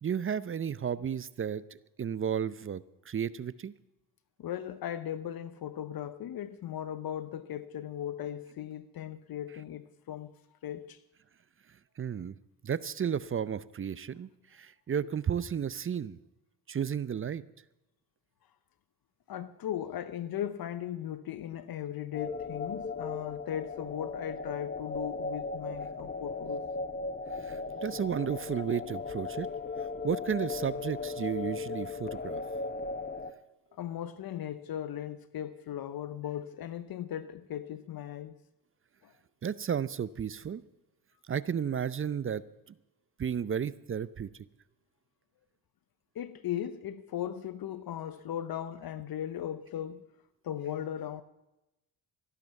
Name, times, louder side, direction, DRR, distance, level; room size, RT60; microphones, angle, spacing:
voice 1, 0.0-3.7 12.0-12.3 12.6-16.2 16.7-17.4 27.4-29.5 29.8-32.4 39.4-40.6 41.3-42.4 43.2-44.3, right 8 dB, 30° right, 0.5 m, -33 dB
voice 2, 4.4-10.3 10.6-11.0 19.3-26.7 33.7-38.3 39.0-39.1 46.1-50.0 50.4-51.2, left 10 dB, 55° left, 0.8 m, -38 dB
sound 1, 22.1-33.3, left 4 dB, 20° left, 0.9 m, -37 dB
14.0 x 12.0 x 7.1 m
cardioid pair, 80°, 43 cm